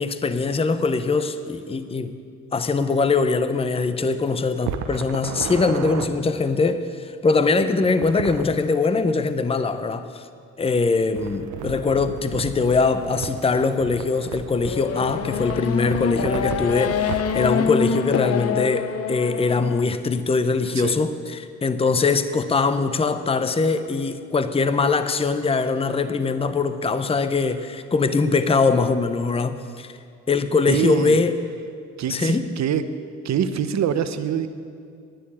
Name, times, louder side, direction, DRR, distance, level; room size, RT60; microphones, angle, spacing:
voice 1, 0.0-2.2 2.5-10.2 10.6-29.9 30.3-31.3 32.1-32.5, left 4 dB, 20° left, 11 dB, 0.7 m, -22 dB
sound 1, 4.6-6.1 7.8-8.5 11.1-17.5, right 7 dB, 85° right, 1.0 m, -34 dB
Race car auto racing / Accelerating revving vroom, 14.6-19.8, left 7 dB, 50° left, 0.8 m, -26 dB
voice 2, 30.7-31.2 32.0-32.8 33.2-34.5, right 9 dB, 65° right, 10 dB, 1.0 m, -24 dB
11.5 x 10.0 x 8.7 m, 2.3 s
cardioid pair, 90°, 30 cm